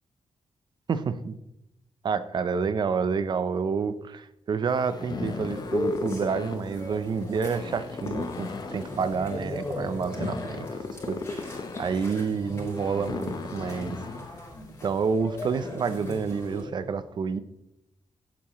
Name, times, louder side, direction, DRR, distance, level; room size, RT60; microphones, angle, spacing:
voice 1, 0.9-1.4 2.0-14.0 14.8-17.4, right 5 dB, 45° right, 0.7 m, -29 dB
sound 1, 4.7-15.1, left 4 dB, 40° left, 0.9 m, -37 dB
sound 2, 5.2-16.6, left 2 dB, 25° left, 3.4 m, -37 dB
17.0 x 8.5 x 3.1 m
wide cardioid pair, 175°, 10 cm